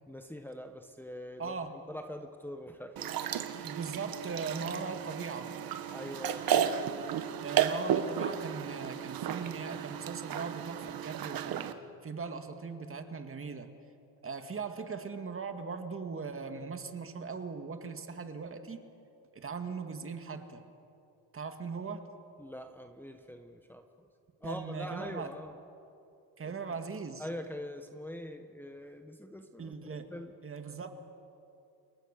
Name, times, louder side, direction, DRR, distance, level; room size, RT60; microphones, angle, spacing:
voice 1, 0.1-3.3 5.9-6.8 22.4-23.9 24.4-25.6 26.4-26.5 27.2-30.3, equal, 5° left, 5 dB, 1.3 m, -43 dB
voice 2, 1.4-1.8 3.6-5.5 7.4-11.7 12.0-13.7 14.2-18.8 19.3-20.6 21.3-22.1 24.4-25.3 26.4-27.3 29.6-30.1 30.4-30.9, right 5 dB, 30° right, 7 dB, 2.2 m, -39 dB
sound 1, 3.0-11.7, right 9 dB, 60° right, 1.4 m, -33 dB
29.0 x 22.0 x 6.8 m, 2.6 s
cardioid pair, 95°, 40 cm